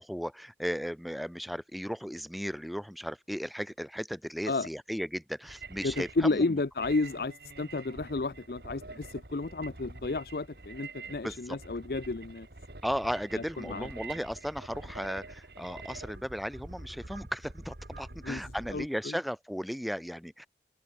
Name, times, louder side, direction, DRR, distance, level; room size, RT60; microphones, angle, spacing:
voice 1, 0.0-6.4 11.2-11.6 12.8-20.5, equal, ahead, 0.6 m, -36 dB
sound 1, 5.4-18.9, right 2 dB, 65° right, 2.5 m, -46 dB
voice 2, 5.8-12.5 13.3-13.9 18.2-18.4 18.7-19.2, left 3 dB, 60° left, 0.6 m, -32 dB
open air
head